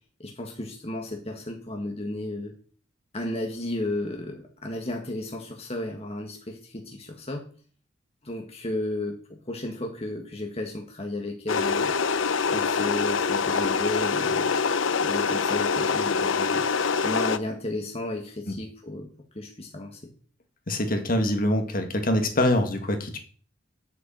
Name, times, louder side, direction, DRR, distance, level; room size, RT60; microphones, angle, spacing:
voice 1, 0.2-2.5 3.1-7.4 8.2-12.0 12.4-14.6 15.0-16.7 17.0-19.1 19.3-20.0, left 1 dB, 30° left, 2 dB, 1.7 m, -33 dB
sound 1, 11.5-17.4, left 5 dB, 85° left, 0.7 m, -25 dB
voice 2, 20.7-23.2, left 1 dB, 50° left, 6 dB, 2.0 m, -24 dB
8.4 x 8.1 x 7.6 m, 0.43 s
head